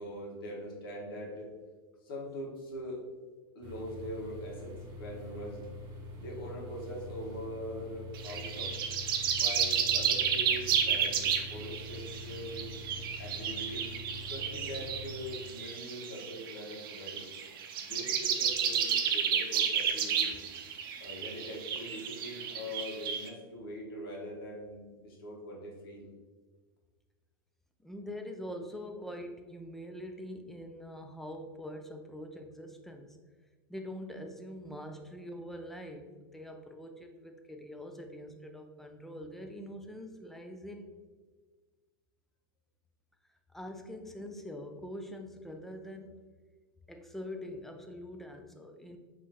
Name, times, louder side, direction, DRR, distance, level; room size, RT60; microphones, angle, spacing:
voice 1, 0.0-1.5 2.0-3.0 3.5-5.6 6.2-8.8 9.3-12.7 13.2-13.9 14.3-17.3 17.8-20.3 21.0-26.1, equal, 75° left, -2 dB, 1.4 m, -42 dB
sound 1, 3.6-15.3, left 1 dB, 40° right, 1.2 m, -45 dB
sound 2, 8.1-23.3, right 7 dB, 70° right, 0.6 m, -32 dB
voice 2, 27.8-33.2 33.7-40.9 43.2-46.2 46.9-49.0, equal, ahead, 4 dB, 0.4 m, -44 dB
5.2 x 3.1 x 2.9 m, 1.4 s
hypercardioid pair, 130°, 12 cm